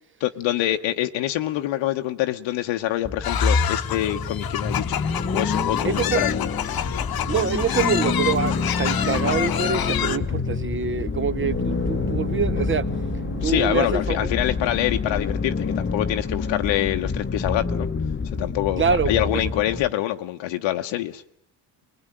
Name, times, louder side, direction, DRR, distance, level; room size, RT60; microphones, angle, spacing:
voice 1, 0.2-5.0 5.3-6.5 13.4-17.9 18.3-21.2, left 14 dB, 80° left, 1.1 m, -25 dB
sound 1, 3.0-19.9, left 4 dB, 25° left, 1.0 m, -27 dB
sound 2, 3.2-10.2, left 10 dB, 50° left, 1.1 m, -28 dB
voice 2, 5.8-6.2 7.3-12.8 13.4-14.3 18.8-19.3, right 6 dB, 25° right, 0.9 m, -25 dB
sound 3, 11.4-14.3, right 10 dB, 65° right, 1.1 m, -36 dB
20.5 x 20.5 x 9.0 m
supercardioid pair, 70°, 45 cm